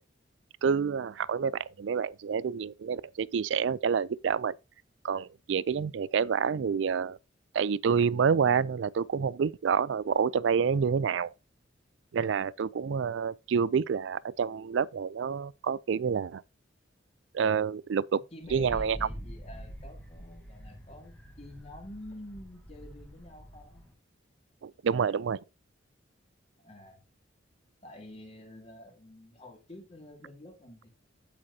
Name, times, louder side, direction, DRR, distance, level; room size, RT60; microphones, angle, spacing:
voice 1, 0.6-4.5 5.0-7.2 7.5-11.3 12.1-16.4 17.3-18.2 18.5-19.0 24.6-25.4, right 6 dB, 75° right, 0.4 m, -28 dB
voice 2, 18.3-23.9 26.6-27.0 27.8-30.9, left 1 dB, 35° left, 2.8 m, -48 dB
Wind, 18.4-23.9, equal, 10° left, 1.3 m, -45 dB
8.9 x 8.5 x 2.8 m
head